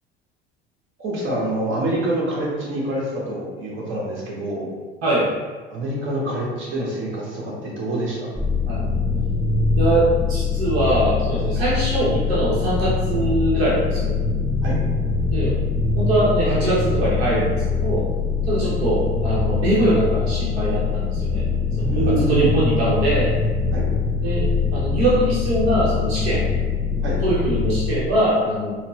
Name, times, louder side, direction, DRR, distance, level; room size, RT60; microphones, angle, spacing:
voice 1, 1.0-4.7 5.7-8.3 14.6-14.8 18.6-18.7 21.9-22.5 23.7-23.9 27.0-27.2, right 1 dB, 40° right, -4 dB, 1.2 m, -26 dB
sound 1, 8.4-28.0, left 4 dB, 5° right, 0.5 m, -23 dB
voice 2, 9.8-14.1 15.3-15.6 16.0-18.1 18.5-21.5 21.8-23.3 24.2-26.5 27.2-28.7, right 1 dB, 75° right, -7 dB, 0.8 m, -22 dB
4.2 x 2.1 x 3.0 m, 1.4 s
figure-of-eight pair, 65°, 31 cm